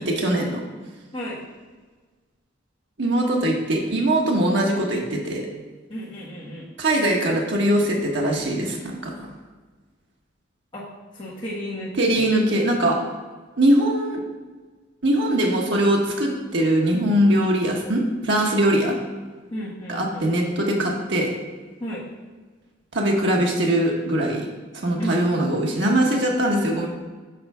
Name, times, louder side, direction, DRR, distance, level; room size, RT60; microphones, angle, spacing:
voice 1, 0.1-0.6 3.0-5.4 6.8-9.3 12.0-13.0 13.6-14.2 15.0-19.0 19.9-21.3 22.9-24.5 24.8-26.9, right 1 dB, 60° right, -1 dB, 1.0 m, -21 dB
voice 2, 5.9-6.7 10.7-10.8 11.1-12.3 19.5-20.3 21.8-22.0 25.0-25.3, equal, 25° left, -9 dB, 1.3 m, -33 dB
6.7 x 4.5 x 5.4 m, 1.4 s
head